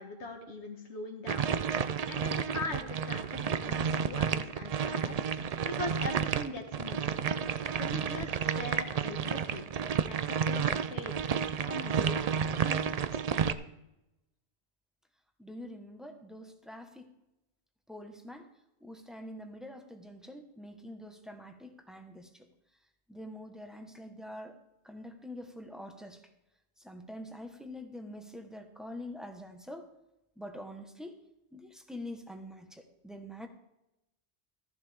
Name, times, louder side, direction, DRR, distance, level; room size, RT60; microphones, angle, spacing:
voice 1, 0.0-1.5 2.1-5.2 5.6-7.2 7.8-9.6 10.1-12.2 12.6-13.2, left 2 dB, 75° left, 3 dB, 1.8 m, -41 dB
sound 1, 1.3-13.5, right 7 dB, 50° right, 0.4 m, -31 dB
voice 2, 15.4-17.1 17.9-18.5 18.8-22.5 23.1-24.6 24.8-26.2 26.8-29.9 30.4-31.1 31.5-33.5, left 1 dB, ahead, 4 dB, 1.1 m, -45 dB
14.5 x 10.5 x 3.5 m, 0.90 s
omnidirectional pair, 1.1 m